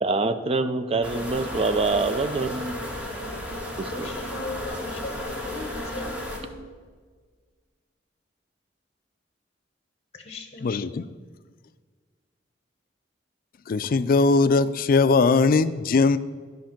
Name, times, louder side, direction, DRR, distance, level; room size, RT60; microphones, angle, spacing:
voice 1, 0.0-2.8 3.8-4.1, right 3 dB, 35° right, 10 dB, 0.5 m, -25 dB
sound 1, 1.0-6.4, left 1 dB, 5° right, 1.4 m, -33 dB
voice 2, 3.9-6.5 10.1-10.7, left 2 dB, 35° left, 5 dB, 0.9 m, -38 dB
voice 3, 10.6-11.1 13.7-16.2, left 4 dB, 50° left, 14 dB, 0.4 m, -20 dB
10.0 x 5.3 x 5.9 m, 1.5 s
head